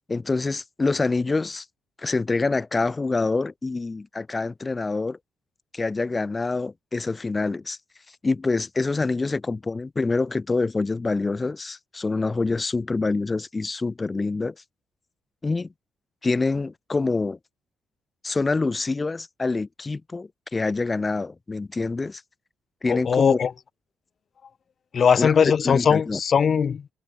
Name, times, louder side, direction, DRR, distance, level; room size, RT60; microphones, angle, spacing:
voice 1, 0.1-1.7 2.0-5.2 5.7-7.8 8.1-14.5 15.4-15.7 16.2-17.4 18.2-22.2 22.8-23.4 25.2-25.3 25.6-26.2, left 3 dB, 25° left, 4.5 m, -26 dB
voice 2, 22.9-23.5 24.9-26.9, left 7 dB, 50° left, 4.5 m, -20 dB
cardioid pair, 90°, 0 cm